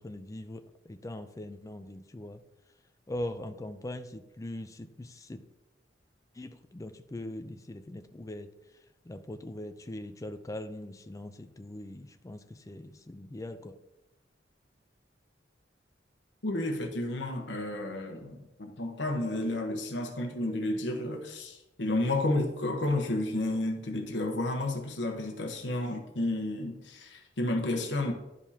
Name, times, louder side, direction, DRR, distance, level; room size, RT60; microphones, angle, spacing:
voice 1, 0.0-2.4 3.1-5.4 6.3-8.5 9.0-13.8, left 1 dB, 20° left, 0.4 m, -41 dB
voice 2, 16.4-28.1, left 1 dB, 75° left, 1.1 m, -31 dB
11.0 x 5.2 x 2.8 m
head